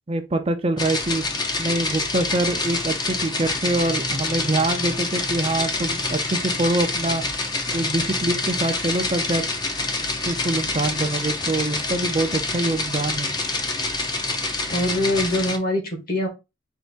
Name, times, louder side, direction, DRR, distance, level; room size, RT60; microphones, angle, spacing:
voice 1, 0.1-1.2 1.6-7.2 7.7-9.5 10.3-13.3, right 2 dB, 30° right, 0.5 m, -24 dB
sound 1, 0.8-15.6, left 3 dB, 25° left, 0.7 m, -26 dB
voice 2, 14.7-16.3, left 1 dB, 50° left, 1.6 m, -23 dB
4.5 x 2.7 x 4.0 m
head